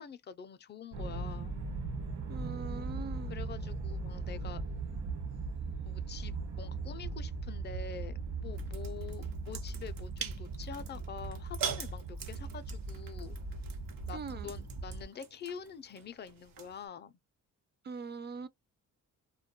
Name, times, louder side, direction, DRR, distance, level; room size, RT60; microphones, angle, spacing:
voice 1, 0.0-1.6 3.3-4.6 5.8-13.4 14.0-17.1, left 7 dB, 35° left, 0.4 m, -46 dB
sound 1, 0.9-15.0, right 3 dB, 65° right, 1.1 m, -39 dB
voice 2, 2.3-3.4 14.1-14.5 17.8-18.5, right 5 dB, 30° right, 0.4 m, -42 dB
sound 2, 8.5-16.9, right 7 dB, 90° right, 0.8 m, -44 dB
2.2 x 2.2 x 2.8 m
cardioid pair, 95°, 33 cm